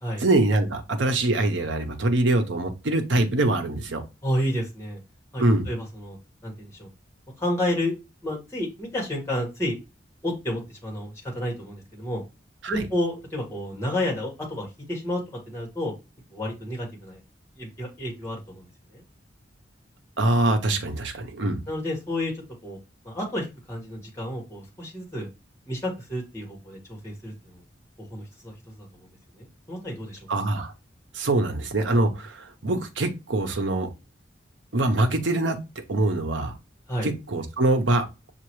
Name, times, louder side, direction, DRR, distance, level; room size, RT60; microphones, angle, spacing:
voice 1, 0.2-4.0 5.4-5.7 12.6-12.8 20.2-21.6 30.3-30.7 31.1-33.9 34.7-35.6 35.9-36.5 37.0-38.1, right 2 dB, 75° right, 0.8 m, -23 dB
voice 2, 4.2-5.0 5.3-6.2 6.4-6.9 7.4-7.9 8.2-9.8 10.2-12.2 12.7-15.9 16.3-17.2 17.5-18.6 18.9-19.0 21.7-22.8 23.0-25.3 25.7-27.6 28.1-28.9 29.4-30.2 36.9-37.1, left 1 dB, 15° left, 1.5 m, -31 dB
5.8 x 2.5 x 3.0 m
head